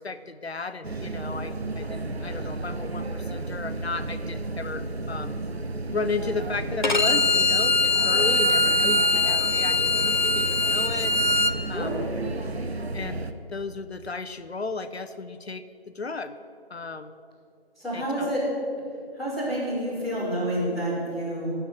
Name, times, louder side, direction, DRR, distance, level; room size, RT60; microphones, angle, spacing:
voice 1, 0.0-5.4 5.9-11.1 11.7-12.0 12.9-13.2 13.5-16.4 16.7-17.2 17.9-18.4, left 4 dB, 85° left, 11 dB, 0.7 m, -34 dB
sound 1, 0.8-13.3, right 2 dB, 85° right, 1.0 m, -32 dB
Bowed string instrument, 6.8-11.5, left 3 dB, 50° left, 0.8 m, -22 dB
voice 2, 11.7-12.0 17.8-18.4 19.2-21.5, right 1 dB, ahead, -19 dB, 2.7 m, -28 dB
15.5 x 5.7 x 8.1 m, 2.5 s
figure-of-eight pair, 165°, 31 cm